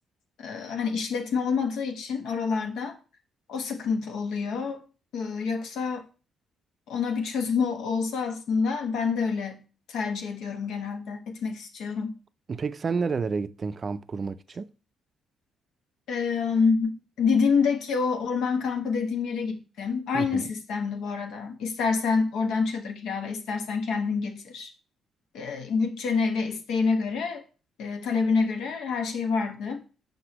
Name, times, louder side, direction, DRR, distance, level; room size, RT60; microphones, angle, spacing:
voice 1, 0.4-2.9 3.5-4.8 5.1-6.0 6.9-9.6 9.9-12.1 16.1-24.7 25.3-27.4 27.8-29.8, left 5 dB, 80° left, 0.9 m, -27 dB
voice 2, 12.5-14.7 20.1-20.5, right 5 dB, 40° right, 0.4 m, -30 dB
6.0 x 5.3 x 2.9 m
cardioid pair, 90°, 0 cm